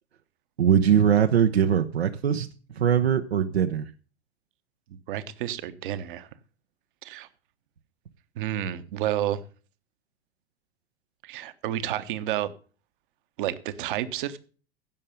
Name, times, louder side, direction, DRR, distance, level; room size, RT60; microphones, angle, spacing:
voice 1, 0.6-2.5 2.7-3.9, right 8 dB, 70° right, 0.9 m, -21 dB
voice 2, 5.1-6.3 7.0-7.3 8.4-9.4 11.2-12.5 13.4-14.4, right 12 dB, 50° right, 1.2 m, -30 dB
16.5 x 6.6 x 5.3 m
figure-of-eight pair, 90°, 32 cm